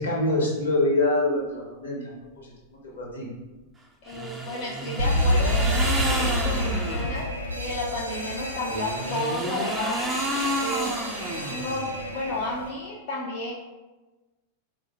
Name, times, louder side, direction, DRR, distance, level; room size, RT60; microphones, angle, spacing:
voice 1, 0.0-2.1 2.4-2.5 2.9-3.3, left 2 dB, 65° left, -2 dB, 0.8 m, -25 dB
voice 2, 4.0-7.3 7.5-10.0 10.6-11.0 11.4-13.5, left 2 dB, 45° left, -3 dB, 0.4 m, -32 dB
sound 1, 4.1-7.2 8.7-12.0, right 1 dB, 10° right, 0.4 m, -30 dB
Alarm, 5.0-12.7, left 1 dB, 90° right, 0.4 m, -28 dB
3.8 x 2.1 x 2.9 m, 1.2 s
figure-of-eight pair, 90°, 0 cm